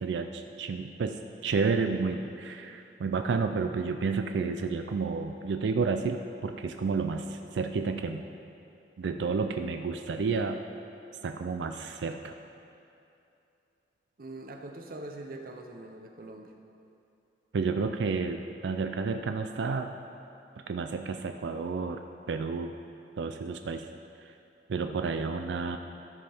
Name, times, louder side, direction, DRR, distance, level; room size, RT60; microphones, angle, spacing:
voice 1, 0.0-8.2 9.0-10.6 11.2-12.3 17.5-19.9 20.7-22.0 22.3-22.7 23.2-23.9 24.2-24.3 24.7-25.8, right 4 dB, 80° right, 6 dB, 0.4 m, -31 dB
voice 2, 14.2-16.5, right 2 dB, 55° right, 3 dB, 0.7 m, -43 dB
13.5 x 5.4 x 4.3 m, 2.7 s
head